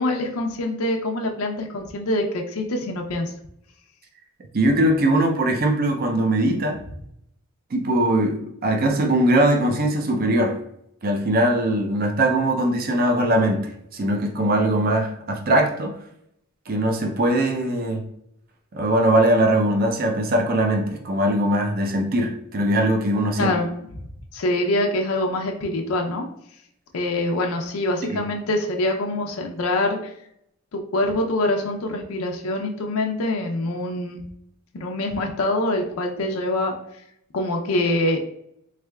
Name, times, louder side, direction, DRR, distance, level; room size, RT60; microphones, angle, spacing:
voice 1, 0.0-3.3 23.4-24.0 24.3-26.3 26.9-30.1 30.7-34.2 34.7-36.7 37.3-38.2, left 1 dB, 90° left, 2 dB, 0.5 m, -25 dB
voice 2, 4.5-6.8 7.7-10.6 11.0-15.9 16.7-18.0 18.7-23.5 28.0-28.2, right 1 dB, 45° right, 3 dB, 0.5 m, -21 dB
3.6 x 3.2 x 2.3 m, 0.74 s
head